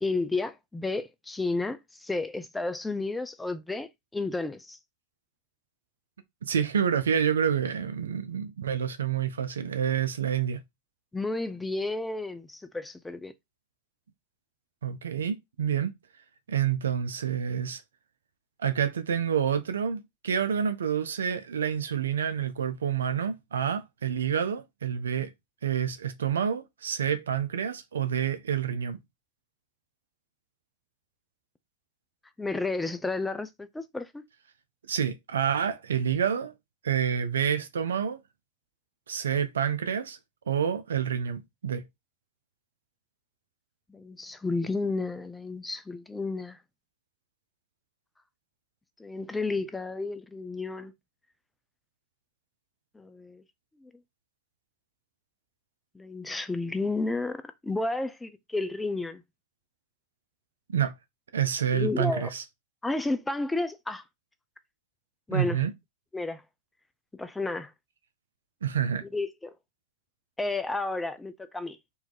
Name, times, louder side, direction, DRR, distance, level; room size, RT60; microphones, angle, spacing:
voice 1, 0.0-4.8 11.1-13.3 32.4-34.2 43.9-46.6 49.0-50.9 52.9-53.4 53.8-53.9 55.9-59.2 61.7-62.3 62.8-64.0 65.3-65.6 66.1-66.4 67.1-67.7 69.0-69.5 70.4-71.8, left 3 dB, 10° left, 0.7 m, -32 dB
voice 2, 6.4-10.6 14.8-15.9 16.5-17.8 18.6-25.3 25.6-29.0 34.9-36.5 36.8-38.2 39.1-40.2 40.5-41.8 60.7-60.9 61.3-62.4 65.3-65.7 68.6-69.1, right 8 dB, 85° right, 0.9 m, -28 dB
4.3 x 2.9 x 3.9 m
hypercardioid pair, 110°, 0 cm